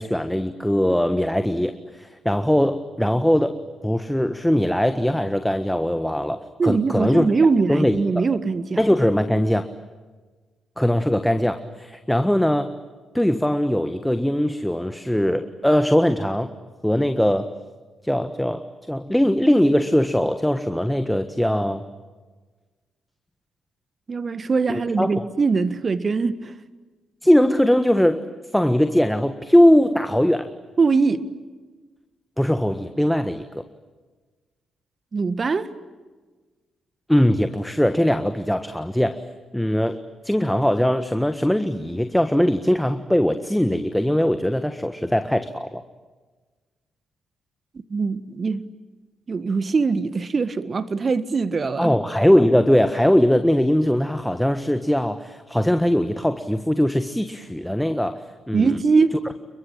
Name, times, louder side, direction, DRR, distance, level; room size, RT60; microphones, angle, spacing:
voice 1, 0.0-3.6 3.8-7.3 7.7-8.2 8.8-9.7 10.8-12.7 13.1-16.5 16.8-17.5 18.0-21.8 24.7-25.1 27.2-28.2 28.5-30.5 32.4-33.6 37.1-39.2 39.5-40.0 40.2-45.8 51.8-58.2 58.5-58.7, equal, 5° left, 1.5 m, -20 dB
voice 2, 6.6-8.8 24.1-26.5 30.8-31.2 35.1-35.7 47.9-48.6 49.3-52.0 58.5-59.1, right 4 dB, 45° right, 1.6 m, -22 dB
29.0 x 23.0 x 9.0 m
hypercardioid pair, 40°, 0 cm